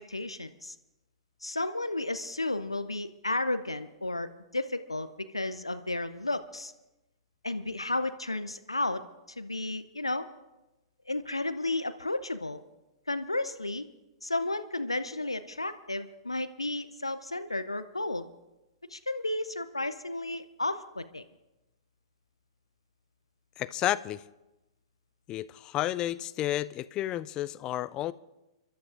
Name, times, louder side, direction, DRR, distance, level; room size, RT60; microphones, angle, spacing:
voice 1, 0.1-0.7 1.4-6.7 7.4-9.0 9.4-10.3 11.1-12.6 13.1-13.8 14.2-18.3 18.9-21.2, left 2 dB, 85° left, 0.6 m, -33 dB
voice 2, 23.6-24.2 25.3-28.1, left 13 dB, 30° left, 0.4 m, -31 dB
30.0 x 12.5 x 2.5 m
figure-of-eight pair, 105°, 3 cm